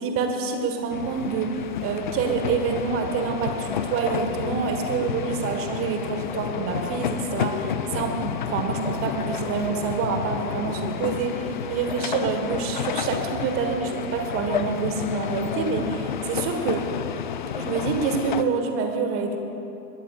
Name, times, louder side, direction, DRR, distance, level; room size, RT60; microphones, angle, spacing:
voice 1, 0.0-1.5 1.8-16.8 17.6-19.4, right 5 dB, 25° right, 5 dB, 1.7 m, -27 dB
sound 1, 0.9-18.4, left 8 dB, 35° left, 0.4 m, -31 dB
22.0 x 20.0 x 2.5 m, 2.9 s
figure-of-eight pair, 100°, 49 cm